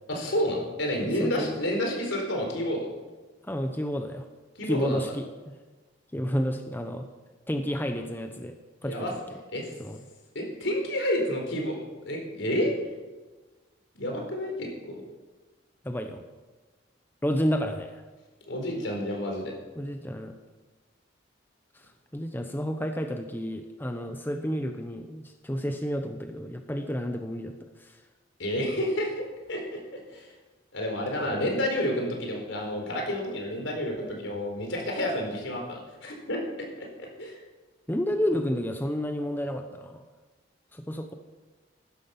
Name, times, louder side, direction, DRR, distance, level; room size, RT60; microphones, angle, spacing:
voice 1, 0.1-2.9 4.5-5.0 8.8-9.1 9.5-9.7 10.3-11.8 12.0-12.7 14.0-15.0 18.5-19.5 28.4-30.3 30.7-36.4 36.8-37.4, equal, 75° left, 1 dB, 4.4 m, -30 dB
voice 2, 1.0-1.5 3.4-4.2 4.6-5.6 6.1-7.1 7.5-8.6 8.8-9.2 9.8-10.0 15.8-16.2 17.2-18.0 19.8-20.3 22.1-27.5 27.8-28.0 37.9-40.0 40.7-41.1, equal, 10° left, 5 dB, 0.8 m, -30 dB
15.5 x 12.5 x 5.9 m, 1.3 s
head